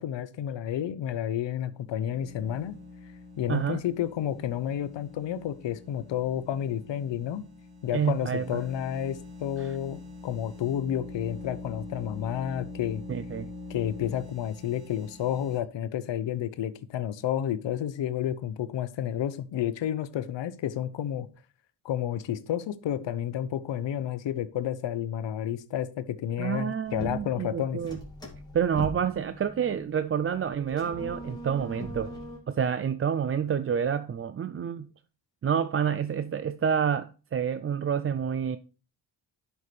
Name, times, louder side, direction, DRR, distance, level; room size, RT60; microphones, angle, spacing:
voice 1, 0.0-2.8 3.4-7.4 7.8-13.0 13.7-21.3 21.8-27.8, left 10 dB, 80° left, 0.8 m, -31 dB
sound 1, 1.7-15.6, left 3 dB, 85° right, 2.8 m, -45 dB
voice 2, 3.5-3.8 7.9-8.6 9.6-9.7 13.1-13.5 26.4-28.0 28.5-32.1 32.5-34.9 35.4-38.6, right 7 dB, 35° right, 0.4 m, -28 dB
sound 2, 26.8-32.4, equal, 10° left, 2.8 m, -41 dB
11.0 x 5.5 x 3.2 m
cardioid pair, 100°, 43 cm